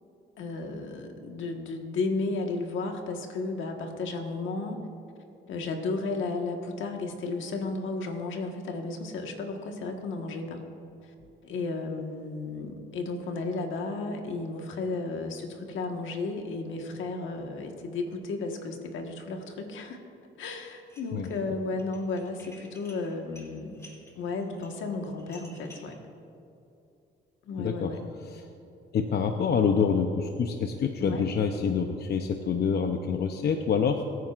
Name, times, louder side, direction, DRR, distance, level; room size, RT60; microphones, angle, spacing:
voice 1, 0.4-4.8 5.5-10.6 11.4-20.0 20.4-23.8 24.2-26.0 27.5-28.0 31.0-31.3, left 3 dB, 75° left, 3 dB, 1.5 m, -33 dB
Dishes pots and pans, 20.8-21.4 21.7-26.0, left 1 dB, 15° left, 2.9 m, -53 dB
voice 2, 27.6-28.5 28.9-34.0, left 6 dB, 55° left, 5 dB, 0.7 m, -27 dB
23.5 x 9.3 x 2.5 m, 2.7 s
cardioid pair, 90°, 20 cm